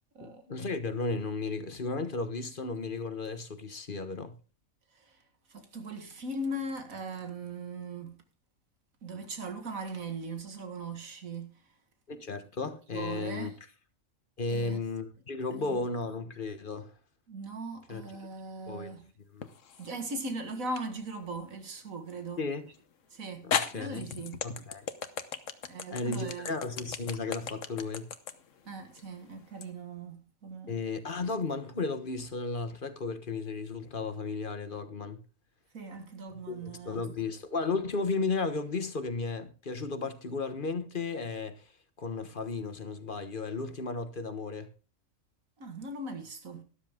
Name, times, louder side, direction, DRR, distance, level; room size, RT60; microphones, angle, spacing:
voice 1, 0.2-4.3 12.1-13.5 14.4-16.9 17.9-18.0 18.7-18.9 19.3-19.5 22.4-22.7 23.4-24.0 24.4-24.9 25.9-28.1 30.7-35.2 36.3-41.6 42.0-44.7, left 3 dB, 40° left, 1.4 m, -34 dB
voice 2, 5.5-8.2 9.0-11.6 12.9-13.5 14.5-14.8 15.5-15.8 17.3-19.1 19.8-22.5 23.1-24.4 25.7-26.6 28.7-30.8 35.7-37.1 45.6-46.6, right 2 dB, 80° right, 2.1 m, -39 dB
sound 1, 19.4-20.0 20.8-20.9 22.7-22.8 23.5-29.7, left 7 dB, 65° left, 1.3 m, -35 dB
13.0 x 12.0 x 3.7 m
omnidirectional pair, 1.4 m